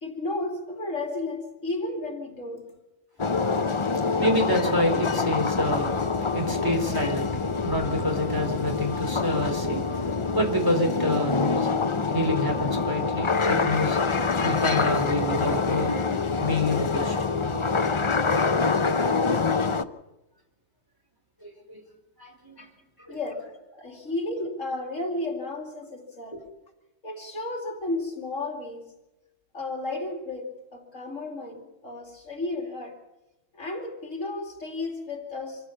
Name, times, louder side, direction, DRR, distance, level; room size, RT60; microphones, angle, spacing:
voice 1, 0.0-2.7 22.6-22.7 23.1-26.4 27.0-28.9 29.5-33.0 33.5-35.7, left 2 dB, 65° left, 4 dB, 2.9 m, -33 dB
sound 1, 3.2-19.8, left 4 dB, 30° left, 0.6 m, -26 dB
voice 2, 4.2-6.0 6.3-11.7 12.1-14.0 14.4-16.0 16.4-17.2 21.4-21.8 22.2-22.6 23.1-23.2, left 1 dB, 15° right, 2 dB, 3.9 m, -27 dB
25.5 x 15.0 x 7.1 m, 0.97 s
omnidirectional pair, 1.4 m